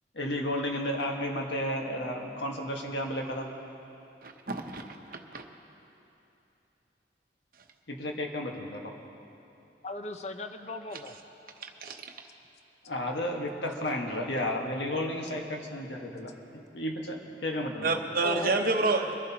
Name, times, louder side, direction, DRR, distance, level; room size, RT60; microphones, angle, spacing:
voice 1, 0.1-3.5 7.9-8.9 12.9-18.0, left 1 dB, 80° left, 1 dB, 1.4 m, -33 dB
voice 2, 4.2-5.4 11.6-12.0 17.8-19.1, right 3 dB, 50° right, 4 dB, 0.9 m, -29 dB
voice 3, 9.8-11.2 18.2-19.1, left 2 dB, 35° left, 7 dB, 0.5 m, -38 dB
23.5 x 11.0 x 2.8 m, 2.9 s
head